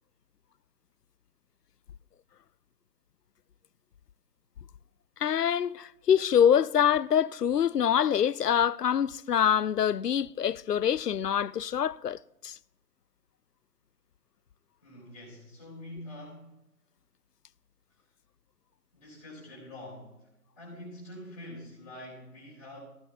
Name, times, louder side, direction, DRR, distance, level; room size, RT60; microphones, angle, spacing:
voice 1, 5.2-12.6, left 9 dB, 90° left, 0.5 m, -25 dB
voice 2, 14.8-16.6 18.9-20.3 20.6-22.8, left 1 dB, 10° left, 4.0 m, -45 dB
15.5 x 15.5 x 2.9 m
figure-of-eight pair, 170°, 47 cm